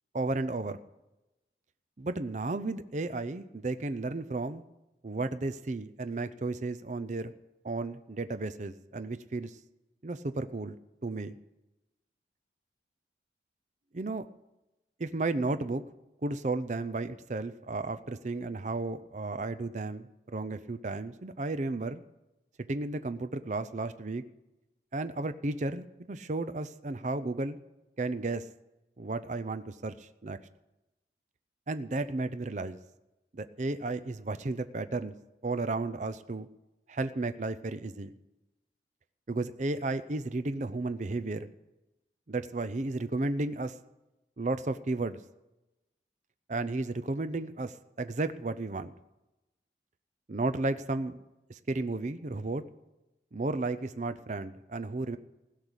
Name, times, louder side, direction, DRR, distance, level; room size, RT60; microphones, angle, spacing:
voice 1, 0.1-0.8 2.0-4.6 5.0-7.3 7.6-9.6 10.0-10.8 11.0-11.4 13.9-14.2 15.0-15.8 16.2-22.0 22.7-24.2 24.9-27.6 28.0-28.4 29.0-30.4 31.7-32.8 33.3-35.1 35.4-36.5 36.9-38.1 39.3-41.5 42.3-43.7 44.4-45.2 46.5-48.9 50.3-51.2 51.5-52.6 53.3-55.2, right 2 dB, 40° right, 12 dB, 0.5 m, -33 dB
16.0 x 6.6 x 9.9 m, 0.97 s
head